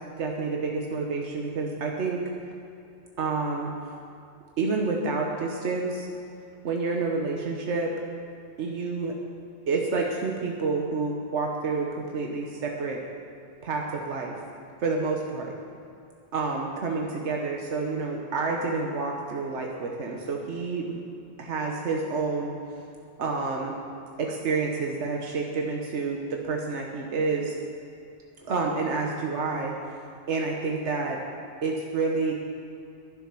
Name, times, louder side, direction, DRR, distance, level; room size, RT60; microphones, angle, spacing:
voice 1, 0.2-2.2 3.2-3.7 4.6-6.1 6.6-7.9 8.6-9.1 9.7-13.0 13.6-14.4 14.8-15.5 16.3-21.0 21.4-22.5 23.2-23.7 24.2-27.6 28.5-29.7 30.3-31.2 31.6-32.3, right 4 dB, 90° right, 0 dB, 1.3 m, -29 dB
11.0 x 10.5 x 6.0 m, 2.6 s
omnidirectional pair, 1.1 m